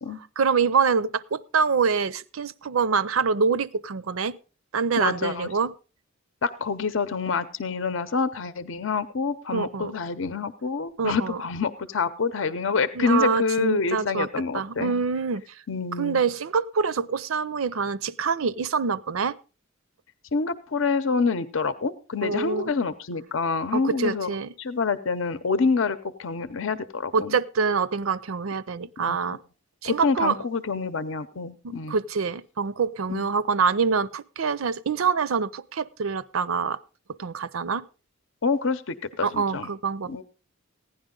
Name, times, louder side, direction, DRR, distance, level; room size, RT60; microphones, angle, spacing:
voice 1, 0.4-4.3 4.7-5.7 9.5-9.9 11.0-11.4 12.9-14.3 14.5-15.6 16.0-19.3 22.2-22.7 23.7-24.5 27.1-29.4 29.8-30.4 31.6-36.8 37.2-37.8 39.2-40.2, right 5 dB, 80° right, 18 dB, 0.6 m, -25 dB
voice 2, 5.0-5.5 6.4-14.9 15.7-16.2 20.3-24.3 24.6-27.4 29.0-29.4 29.8-32.0 33.1-33.3 38.4-39.7 40.1-40.2, left 4 dB, 65° left, 13 dB, 0.7 m, -27 dB
16.0 x 10.0 x 3.8 m, 0.34 s
head